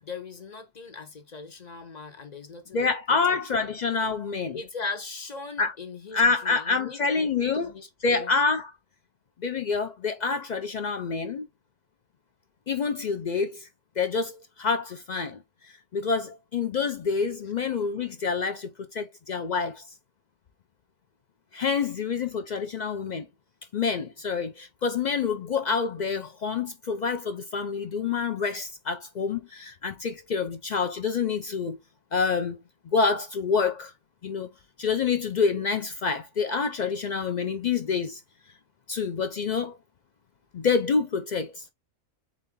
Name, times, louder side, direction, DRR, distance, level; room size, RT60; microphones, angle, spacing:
voice 1, 0.0-2.9 3.6-3.7 4.5-8.3, left 4 dB, 35° left, 1.0 m, -39 dB
voice 2, 2.7-4.6 5.6-5.7 6.1-7.7 8.0-8.7 9.4-11.5 12.7-13.7 14.0-19.9 21.5-23.3 23.7-31.8 32.1-32.6 32.9-33.9 34.2-34.5 34.8-38.2 38.9-39.8 40.5-41.6, left 5 dB, 70° left, 0.4 m, -27 dB
4.2 x 3.6 x 3.6 m
omnidirectional pair, 1.4 m